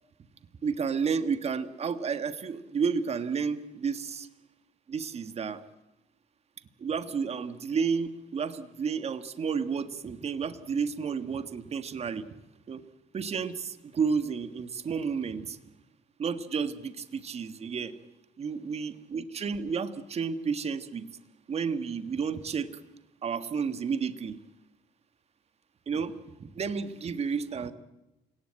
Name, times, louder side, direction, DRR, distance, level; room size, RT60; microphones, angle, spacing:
voice 1, 0.6-4.3 4.9-5.6 6.8-12.3 12.7-12.8 13.1-15.6 16.2-17.9 18.4-21.1 21.5-22.8 23.2-24.4 25.9-27.7, right 6 dB, 40° right, 12 dB, 1.6 m, -31 dB
28.5 x 18.0 x 8.9 m, 0.97 s
cardioid pair, 110°, 17 cm